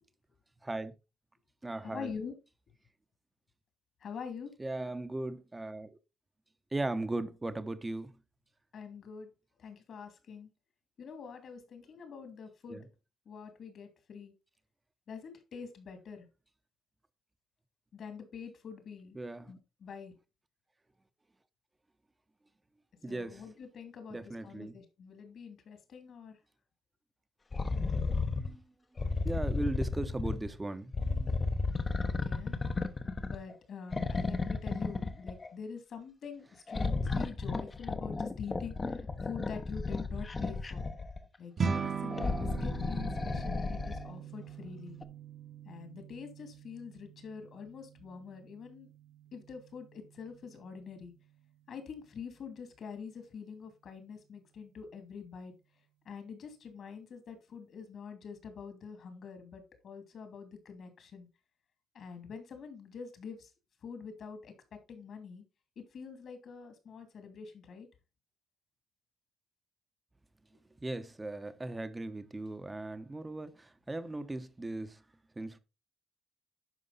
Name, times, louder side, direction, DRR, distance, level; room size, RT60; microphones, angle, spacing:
voice 1, 0.6-0.9 1.6-2.1 4.6-5.9 6.7-8.2 12.7-12.8 19.1-19.5 23.0-23.4 24.1-24.8 28.3-28.6 29.1-31.4 70.8-75.0 75.4-75.6, right 2 dB, 15° right, 1.0 m, -38 dB
voice 2, 1.8-2.4 4.0-4.5 8.7-9.3 9.6-10.5 11.0-12.9 13.3-14.3 15.1-16.3 17.9-19.2 19.5-20.1 23.1-26.4 29.0-29.3 32.0-32.6 33.2-40.9 41.4-45.0 45.6-48.9 49.3-51.1 51.7-55.5 56.0-61.3 61.9-63.5 63.8-65.4 65.8-67.9, left 6 dB, 60° left, 2.6 m, -45 dB
sound 1, 27.5-28.5 29.0-30.5 30.9-33.5 33.9-35.5 36.7-41.2 42.1-44.1 45.0-45.1, left 3 dB, 30° left, 1.0 m, -33 dB
sound 2, 41.6-51.0, right 6 dB, 45° right, 1.3 m, -41 dB
11.0 x 4.7 x 4.1 m
cardioid pair, 90°, 0 cm